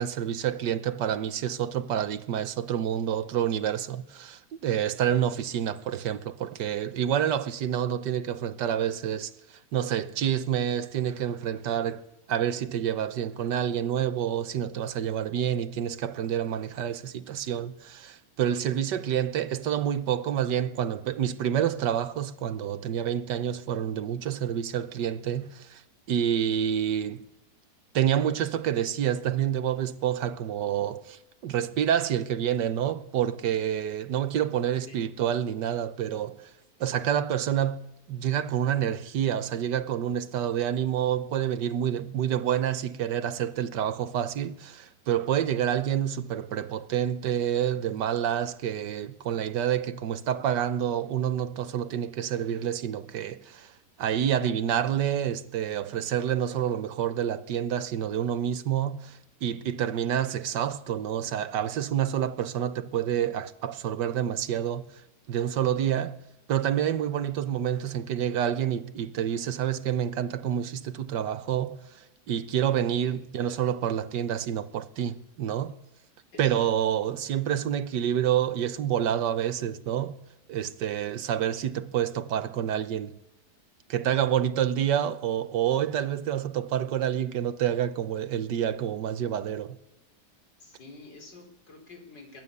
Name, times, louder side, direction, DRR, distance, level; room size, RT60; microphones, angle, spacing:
voice 1, 0.0-12.0 12.3-25.8 26.1-27.2 27.9-36.5 36.8-53.7 54.0-64.9 65.3-66.2 66.5-72.0 72.3-75.7 76.4-80.2 80.5-83.1 83.9-89.8, right 9 dB, 80° right, 1.6 m, -28 dB
voice 2, 90.6-92.4, left 3 dB, 85° left, 5.6 m, -48 dB
22.5 x 18.0 x 6.8 m
omnidirectional pair, 1.8 m